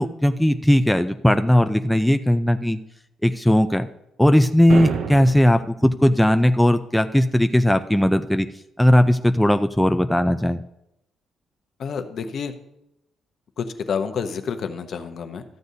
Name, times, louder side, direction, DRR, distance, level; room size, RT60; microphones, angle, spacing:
voice 1, 0.0-2.8 3.2-3.9 4.2-8.5 8.8-10.6, left 1 dB, 5° left, 7 dB, 0.3 m, -18 dB
sound 1, 4.7-5.7, right 7 dB, 75° right, 0.7 m, -28 dB
voice 2, 11.8-12.5 13.6-15.4, left 6 dB, 60° left, 7 dB, 0.8 m, -29 dB
13.5 x 7.9 x 2.7 m, 0.82 s
cardioid pair, 105°, 0 cm